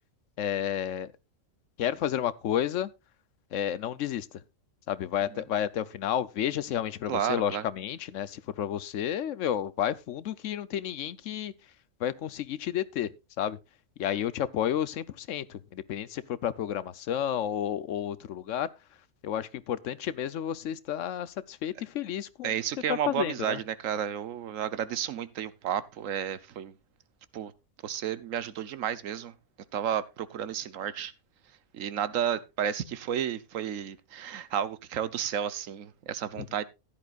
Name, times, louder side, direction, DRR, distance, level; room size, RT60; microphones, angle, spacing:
voice 1, 0.4-1.1 1.8-2.9 3.5-4.3 4.9-11.5 12.0-13.1 13.4-13.6 14.0-18.7 19.2-22.5 22.9-23.6 36.3-36.5, left 10 dB, 70° left, 1.0 m, -31 dB
voice 2, 7.1-7.6 22.4-26.7 27.3-27.5 27.8-29.3 29.7-31.1 31.7-36.6, right 9 dB, 75° right, 1.2 m, -32 dB
15.0 x 10.5 x 2.4 m
omnidirectional pair, 1.4 m